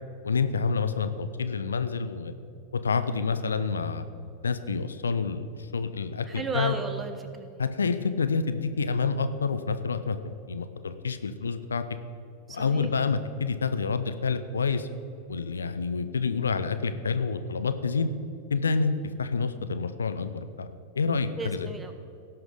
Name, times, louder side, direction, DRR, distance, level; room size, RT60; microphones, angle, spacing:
voice 1, 0.2-2.3 2.7-4.0 4.4-6.7 7.6-10.2 10.5-11.8 12.5-14.9 15.3-18.1 18.5-18.9 19.2-20.7 21.0-21.7, left 5 dB, 70° left, 10 dB, 0.6 m, -28 dB
voice 2, 6.3-7.6 12.5-12.9 21.4-21.9, right 3 dB, 15° right, 7 dB, 1.1 m, -34 dB
17.0 x 5.9 x 5.0 m, 2.5 s
figure-of-eight pair, 90°, 0 cm